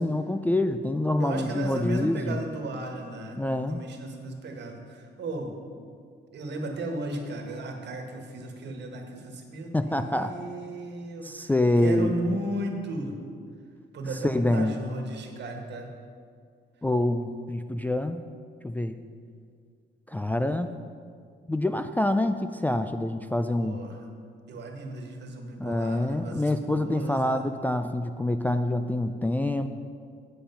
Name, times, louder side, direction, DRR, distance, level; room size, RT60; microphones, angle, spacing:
voice 1, 0.0-2.4 3.4-3.8 9.7-10.3 11.2-12.1 14.2-14.7 16.8-18.2 18.6-19.0 20.1-20.8 21.5-23.8 25.6-29.7, left 1 dB, 10° left, 7 dB, 0.3 m, -26 dB
voice 2, 1.2-5.5 6.3-11.5 11.8-13.2 13.9-15.9 23.5-24.0 24.5-27.4, right 1 dB, 60° right, 3 dB, 1.5 m, -35 dB
8.6 x 7.9 x 5.6 m, 2.2 s
cardioid pair, 90°, 20 cm